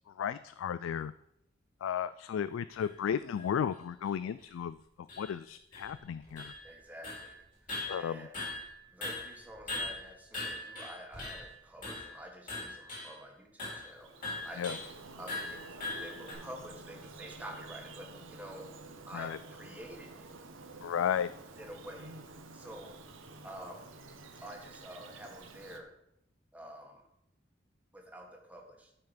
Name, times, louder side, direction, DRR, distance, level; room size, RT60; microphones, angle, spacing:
voice 1, 0.2-1.1 1.8-4.8 5.2-6.5 7.9-8.3 14.6-14.8 19.1-19.4 20.8-21.3, left 8 dB, 85° left, 14 dB, 0.3 m, -34 dB
sound 1, 2.8-2.9 3.4-3.5 4.0-4.1 4.4-4.5 5.1-5.3 5.7-6.8 7.0-7.3 7.7-8.8 9.0-11.5 11.8-12.2 12.5-13.2 13.6-13.9 14.2-14.9 15.3-16.3, left 2 dB, 40° left, 4.1 m, -40 dB
voice 2, 6.6-7.7 8.0-8.4 8.9-14.8 15.2-18.7 19.1-20.3 21.6-23.1 23.4-23.9 24.4-25.9 26.5-27.0 27.9-28.9, equal, 10° right, 1 dB, 1.6 m, -49 dB
Bird vocalization bird call bird song, 13.7-25.8, right 3 dB, 85° right, 1.1 m, -50 dB
12.5 x 5.7 x 5.2 m, 0.79 s
head